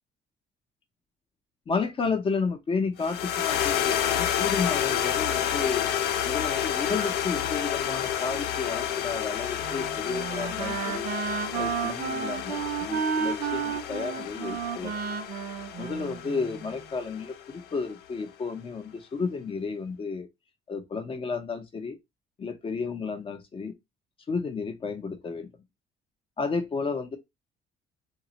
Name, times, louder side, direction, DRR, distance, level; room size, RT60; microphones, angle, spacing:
voice 1, 1.7-5.9 6.2-11.1 11.5-15.0 15.8-20.3 20.7-22.0 22.4-23.7 24.3-25.5 26.4-27.2, left 4 dB, 30° left, 0.6 m, -32 dB
sound 1, 3.0-17.4, left 10 dB, 75° left, 0.4 m, -30 dB
Wind instrument woodwind instrument, 9.6-16.7, right 7 dB, 65° right, 0.5 m, -32 dB
2.2 x 2.1 x 3.8 m
cardioid pair, 110°, 17 cm